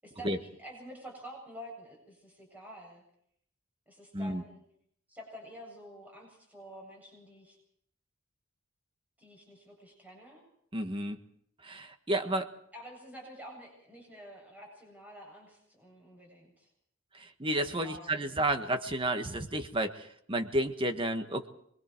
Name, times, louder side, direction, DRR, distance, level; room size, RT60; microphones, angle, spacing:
voice 1, 0.0-3.0 3.9-4.6 5.1-7.6 9.2-10.4 12.7-16.7 17.8-18.3, equal, 10° right, -1 dB, 7.8 m, -49 dB
voice 2, 10.7-11.2 11.6-12.5 17.1-21.5, right 1 dB, 25° right, 7 dB, 1.6 m, -31 dB
26.0 x 22.5 x 4.6 m, 0.70 s
head